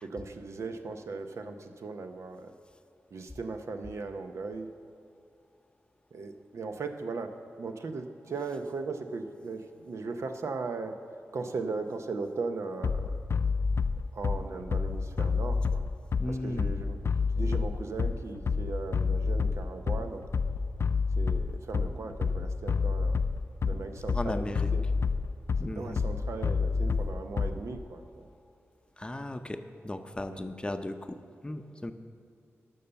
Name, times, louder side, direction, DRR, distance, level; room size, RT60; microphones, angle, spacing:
voice 1, 0.0-2.5 3.1-4.7 6.1-11.0 11.3-13.1 14.1-15.8 16.3-17.0 17.3-20.2 21.2-23.2 23.6-24.8 25.7-28.3 30.3-30.5, right 3 dB, 75° right, 6 dB, 0.7 m, -38 dB
Bass drum, 12.8-27.8, left 5 dB, 60° left, 0.4 m, -29 dB
voice 2, 16.2-16.7 24.1-24.7 25.6-26.0 29.0-31.2 31.4-31.9, left 1 dB, 20° left, 8 dB, 0.6 m, -36 dB
12.5 x 5.5 x 6.9 m, 2.4 s
cardioid pair, 60°, 5 cm